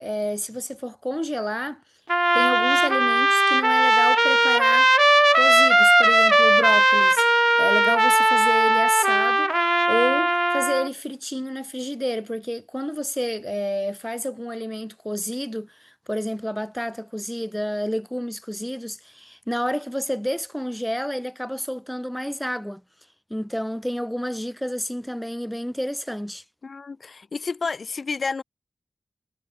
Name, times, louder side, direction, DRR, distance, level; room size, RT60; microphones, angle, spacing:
voice 1, 0.0-1.8 2.3-4.9 5.4-9.5 9.9-22.8 23.3-26.4, equal, 5° left, 3.2 m, -29 dB
Trumpet, 2.1-10.9, right 1 dB, 15° right, 1.4 m, -18 dB
voice 2, 26.6-28.4, left 4 dB, 65° left, 5.2 m, -30 dB
wide cardioid pair, 75°, 0 cm